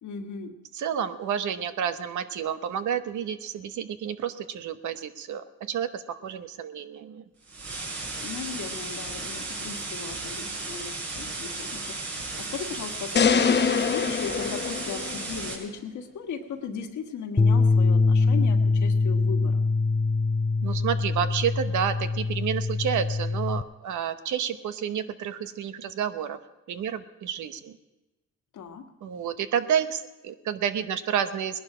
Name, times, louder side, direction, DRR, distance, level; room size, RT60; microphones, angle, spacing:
voice 1, 0.0-0.6 8.2-19.6 28.5-28.9, left 6 dB, 70° left, 5 dB, 1.5 m, -37 dB
voice 2, 0.7-7.2 20.6-26.4 26.7-27.8 29.0-31.6, right 8 dB, 75° right, 10 dB, 1.0 m, -30 dB
sound 1, 7.5-15.5, right 3 dB, 60° right, 4.6 m, -35 dB
sound 2, 13.2-15.5, left 6 dB, 35° left, 0.8 m, -24 dB
sound 3, 17.4-23.6, left 3 dB, 10° left, 0.5 m, -23 dB
19.0 x 11.0 x 5.0 m, 1.1 s
cardioid pair, 90°, 30 cm